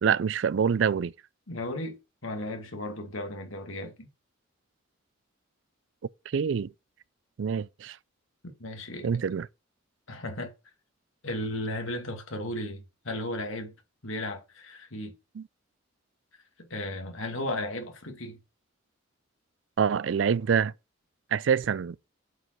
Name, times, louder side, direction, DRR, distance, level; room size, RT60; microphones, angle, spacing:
voice 1, 0.0-1.1 6.3-6.7 7.4-8.0 9.0-9.5 15.4-15.5 19.8-20.7 21.3-22.0, right 7 dB, 65° right, 0.4 m, -26 dB
voice 2, 1.5-2.0 2.2-4.1 8.6-9.1 10.1-10.5 11.2-13.7 14.0-15.1 16.7-18.4, left 1 dB, 90° left, 2.5 m, -35 dB
7.8 x 5.1 x 5.9 m
head